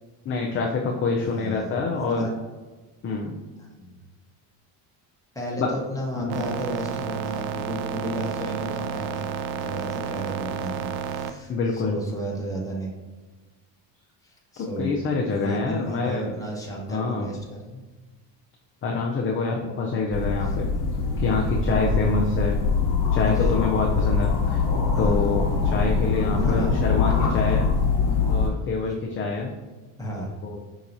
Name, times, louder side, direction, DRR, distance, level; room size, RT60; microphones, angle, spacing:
voice 1, 0.2-2.3 3.0-3.4 5.6-5.7 6.2-6.4 11.5-12.0 14.6-16.3 16.9-17.3 18.8-20.7 21.2-22.6 23.1-24.6 25.0-27.7 28.3-29.5 30.4-30.6, left 4 dB, 25° left, -1 dB, 0.5 m, -26 dB
voice 2, 1.2-1.8 2.0-2.3 3.6-4.0 5.3-9.3 9.5-12.9 14.2-14.9 15.2-17.8 20.4-20.5 23.2-23.6 24.9-25.3 26.3-27.6 30.0-30.4, equal, 5° left, -3 dB, 1.2 m, -33 dB
sound 1, 6.3-11.3, right 7 dB, 55° right, 0.5 m, -31 dB
sound 2, 20.1-28.5, left 5 dB, 55° left, 1.1 m, -23 dB
5.5 x 2.9 x 2.6 m, 1.3 s
supercardioid pair, 95°, 48 cm